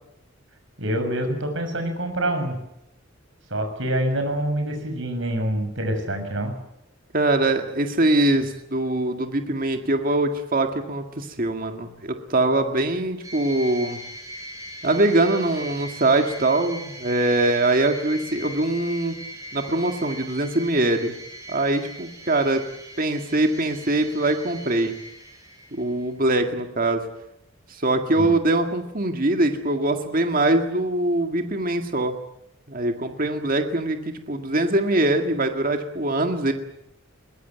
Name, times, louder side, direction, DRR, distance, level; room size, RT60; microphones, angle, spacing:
voice 1, 0.8-2.6 3.5-6.5 28.2-28.4, right 1 dB, 60° right, 5 dB, 6.4 m, -26 dB
voice 2, 7.1-14.0 14.8-19.2 19.5-21.2 21.5-22.6 23.0-24.9 25.7-27.0 27.7-32.1 32.7-36.5, right 2 dB, 40° right, 5 dB, 2.0 m, -23 dB
sound 1, 13.2-26.1, right 1 dB, 15° right, 6.2 m, -40 dB
22.0 x 20.0 x 9.4 m, 0.83 s
head